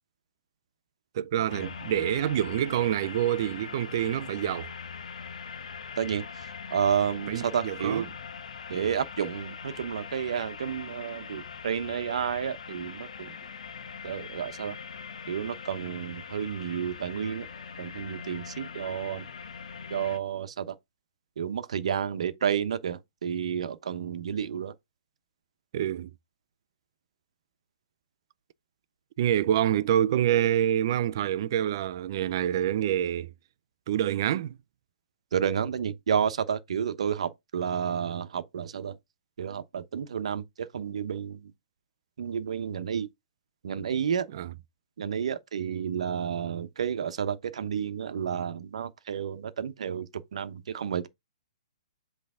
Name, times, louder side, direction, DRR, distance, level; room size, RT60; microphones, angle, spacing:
voice 1, 1.1-4.7 7.3-8.1 8.7-8.9 25.7-26.1 29.2-33.3 33.9-34.6 44.3-44.5, right 11 dB, 35° right, 0.4 m, -27 dB
sound 1, 1.5-20.2, left 6 dB, 85° left, 1.0 m, -42 dB
voice 2, 6.0-8.1 8.7-13.3 14.0-14.8 15.3-17.5 17.8-19.3 19.9-20.8 21.4-24.7 35.3-39.0 39.4-41.5 42.2-43.1 43.6-44.3 45.0-51.1, right 8 dB, 65° right, 1.0 m, -31 dB
7.9 x 3.3 x 3.7 m
hypercardioid pair, 175°, 4 cm